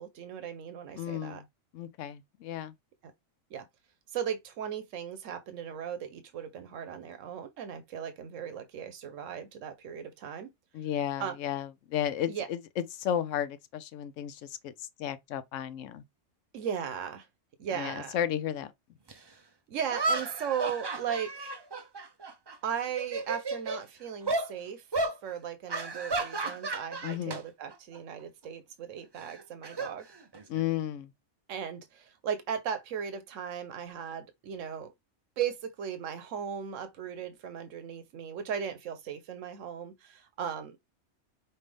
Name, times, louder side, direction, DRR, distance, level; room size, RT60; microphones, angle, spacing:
voice 1, 0.0-1.4 3.0-3.1 3.5-3.7 4.1-10.5 11.2-11.4 12.3-12.5 16.5-17.3 17.6-18.2 19.7-21.5 22.6-24.8 25.2-30.1 31.5-34.9 35.4-40.8, right 8 dB, 90° right, 1.1 m, -37 dB
voice 2, 1.0-1.5 1.7-2.7 10.7-16.0 17.7-18.7 27.0-27.4 30.5-31.1, left 10 dB, 80° left, 0.9 m, -33 dB
sound 1, 19.1-19.2 19.9-22.5 22.9-23.8 24.3-24.5 24.9-25.2 25.7-27.4 27.7-28.0 29.2-30.6, right 3 dB, 35° right, 0.4 m, -33 dB
5.5 x 2.7 x 3.3 m
omnidirectional pair, 1.3 m